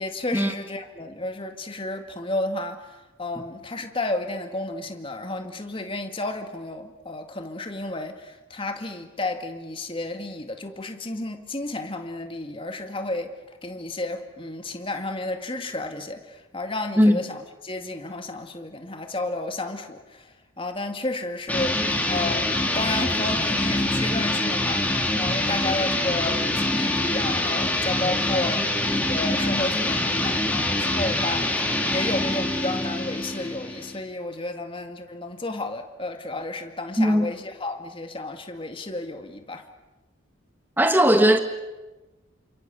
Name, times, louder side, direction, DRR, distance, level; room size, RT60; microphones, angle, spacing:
voice 1, 0.0-13.3 13.6-24.9 25.2-28.7 29.0-39.6, left 2 dB, 25° left, 2.1 m, -32 dB
sound 1, 21.5-34.0, left 1 dB, 10° left, 3.3 m, -25 dB
voice 2, 40.8-41.4, equal, 10° right, 1.6 m, -17 dB
29.0 x 27.0 x 7.0 m
head